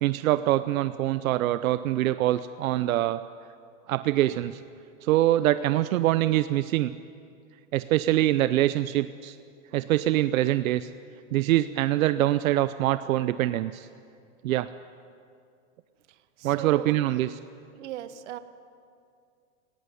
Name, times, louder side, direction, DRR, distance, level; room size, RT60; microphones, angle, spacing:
voice 1, 0.0-3.2 3.9-4.6 5.0-6.9 7.7-9.4 9.7-10.9 11.3-13.9 14.4-14.7 16.4-17.4, right 14 dB, 85° right, 12 dB, 0.7 m, -24 dB
voice 2, 16.1-17.0 17.7-18.4, right 11 dB, 60° right, 11 dB, 1.3 m, -38 dB
18.5 x 17.0 x 9.7 m, 2.4 s
supercardioid pair, 180°, 40 cm